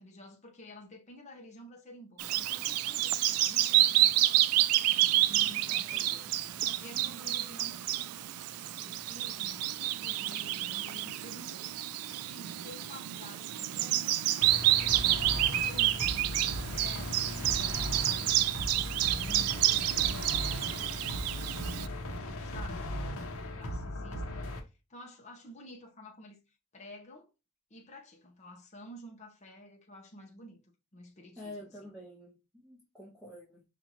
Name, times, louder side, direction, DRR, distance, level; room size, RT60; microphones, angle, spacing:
voice 1, 0.0-4.4 4.9-6.3 6.6-7.8 8.6-11.6 12.1-26.4 26.7-27.3 27.7-30.6 30.9-31.9, left 1 dB, 30° left, 0.8 m, -51 dB
Bird vocalization bird call bird song, 2.2-21.9, right 14 dB, 80° right, 0.3 m, -29 dB
voice 2, 5.7-6.1 31.4-33.6, left 1 dB, 5° right, 1.2 m, -48 dB
sound 1, 14.4-24.6, left 1 dB, 70° left, 1.0 m, -37 dB
5.5 x 2.5 x 2.9 m
head